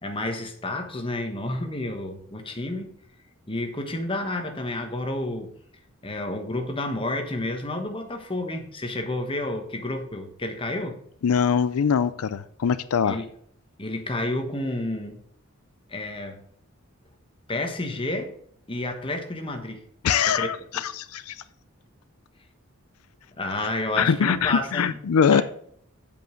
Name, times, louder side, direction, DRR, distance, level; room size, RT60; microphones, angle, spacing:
voice 1, 0.0-2.9 3.5-5.5 6.0-11.0 13.0-13.3 13.8-15.2 15.9-16.4 17.5-18.3 18.7-19.8 20.3-20.5 23.4-25.0 25.3-25.4, left 1 dB, 25° left, 4 dB, 1.2 m, -30 dB
voice 2, 11.2-13.2 20.0-21.4 24.0-25.4, left 7 dB, 85° left, 14 dB, 0.4 m, -22 dB
7.8 x 5.4 x 6.4 m, 0.64 s
head